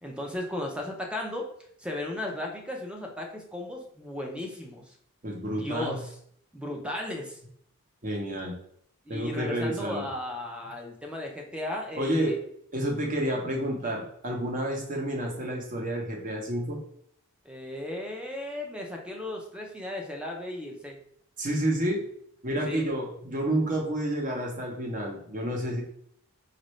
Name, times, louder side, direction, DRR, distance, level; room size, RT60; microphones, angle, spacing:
voice 1, 0.0-1.5 1.8-4.9 5.6-6.1 6.5-7.4 9.1-12.4 17.4-21.0 22.7-22.9, left 1 dB, 5° right, 1 dB, 0.6 m, -35 dB
voice 2, 5.2-6.0 8.0-8.6 9.1-10.0 11.9-12.3 12.7-16.8 21.4-22.0 22.4-25.8, right 1 dB, 35° right, 0 dB, 0.9 m, -29 dB
5.2 x 2.6 x 3.1 m, 0.68 s
head